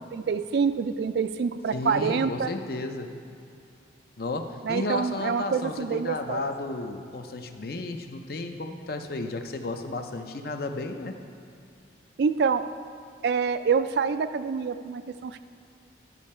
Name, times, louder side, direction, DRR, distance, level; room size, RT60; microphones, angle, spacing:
voice 1, 0.1-2.5 4.6-6.5 12.2-12.7 13.2-15.4, right 5 dB, 60° right, 11 dB, 0.3 m, -26 dB
voice 2, 1.7-3.1 4.2-11.1, left 2 dB, 55° left, 6 dB, 0.6 m, -33 dB
11.0 x 7.3 x 4.3 m, 2.4 s
head